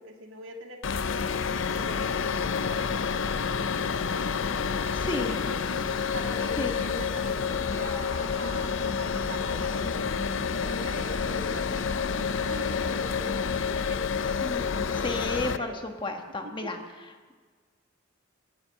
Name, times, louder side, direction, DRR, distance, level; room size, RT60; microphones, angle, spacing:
voice 1, 0.0-4.6 5.0-5.6 6.1-10.1 10.6-15.8 16.4-16.8, right 1 dB, 70° right, 3 dB, 1.8 m, -43 dB
sound 1, 0.8-15.6, left 6 dB, 70° left, 0.5 m, -29 dB
sound 2, 4.3-13.6, equal, 20° right, 1.6 m, -45 dB
voice 2, 4.9-5.3 6.6-6.8 14.4-16.8, left 2 dB, 25° left, 4 dB, 1.3 m, -33 dB
17.5 x 10.0 x 7.3 m, 1.5 s
head